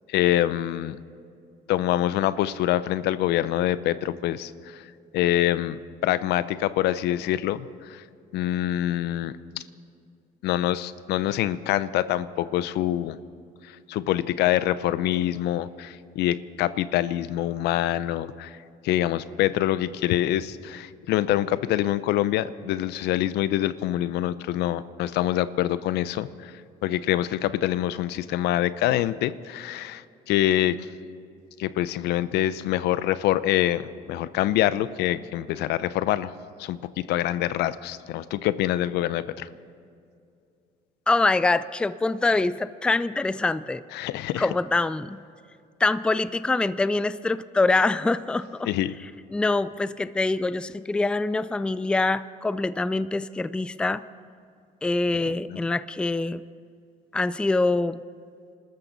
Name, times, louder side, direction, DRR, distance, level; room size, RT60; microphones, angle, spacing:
voice 1, 0.1-1.0 1.7-4.9 5.1-8.0 8.3-9.6 10.4-13.2 13.6-18.6 18.8-26.5 26.8-30.8 31.6-36.3 36.6-39.5 43.9-44.5 48.6-48.9 55.3-55.6, left 13 dB, 80° left, 15 dB, 0.6 m, -25 dB
voice 2, 41.1-43.8 44.4-45.2 45.8-48.7 49.3-54.0 54.8-56.4 57.1-58.0, left 3 dB, 5° left, 15 dB, 0.3 m, -24 dB
26.5 x 13.5 x 4.0 m, 2.4 s
cardioid pair, 110°, 17 cm